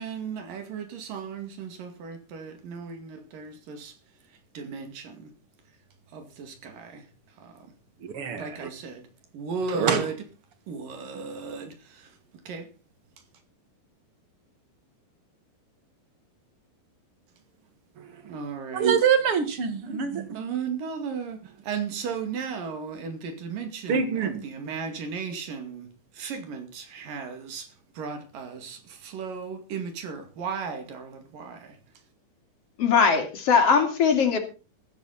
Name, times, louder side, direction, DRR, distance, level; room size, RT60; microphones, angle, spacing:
voice 1, 0.0-4.0 4.5-5.3 6.1-7.1 7.4-7.7 8.3-9.1 9.3-10.2 10.7-12.2 12.5-12.7 18.2-18.9 20.3-31.8, right 5 dB, 80° right, 4.1 m, -35 dB
voice 2, 8.0-8.7 9.7-10.1 18.0-18.4 18.7-20.4 23.9-24.4, right 7 dB, 45° right, 2.5 m, -25 dB
voice 3, 32.8-34.4, left 6 dB, 45° left, 3.4 m, -20 dB
15.5 x 13.5 x 4.2 m
omnidirectional pair, 3.8 m